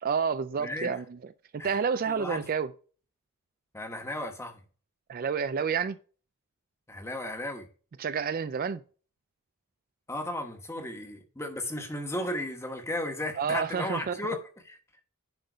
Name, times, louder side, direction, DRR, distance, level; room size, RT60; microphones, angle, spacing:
voice 1, 0.0-1.0 1.6-2.7 5.1-6.0 8.0-8.8 13.4-14.2, right 6 dB, 40° right, 0.3 m, -29 dB
voice 2, 0.6-0.9 1.6-2.5 3.7-4.6 6.9-7.7 10.1-14.8, left 1 dB, 10° left, 1.3 m, -35 dB
10.5 x 3.9 x 4.9 m
head